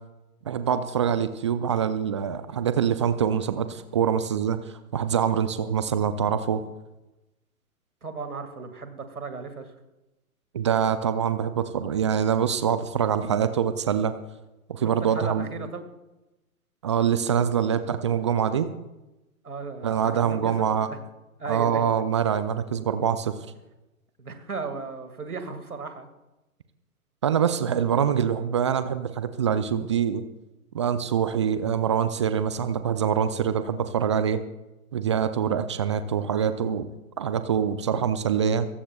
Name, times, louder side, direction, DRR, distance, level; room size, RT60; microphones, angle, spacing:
voice 1, 0.5-6.6 10.5-14.1 14.7-15.5 16.8-18.7 19.8-20.9 21.5-23.4 27.2-30.2 30.7-34.4 34.9-36.9 37.2-38.7, right 8 dB, 20° right, 12 dB, 0.4 m, -24 dB
voice 2, 8.0-9.7 15.0-15.9 19.4-21.0 21.4-21.8 24.2-26.1, right 4 dB, 80° right, 7 dB, 2.2 m, -35 dB
22.5 x 17.0 x 2.4 m, 1.0 s
figure-of-eight pair, 120°, 44 cm